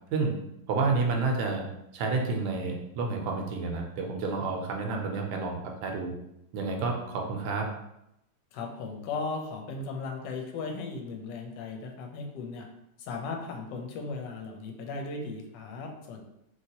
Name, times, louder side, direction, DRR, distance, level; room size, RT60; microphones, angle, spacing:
voice 1, 0.7-1.6 1.9-6.1 6.5-7.7, right 3 dB, 70° right, 1 dB, 1.0 m, -29 dB
voice 2, 8.5-12.7 13.0-16.2, left 4 dB, 75° left, 3 dB, 1.2 m, -37 dB
3.1 x 2.9 x 2.8 m, 0.83 s
omnidirectional pair, 2.1 m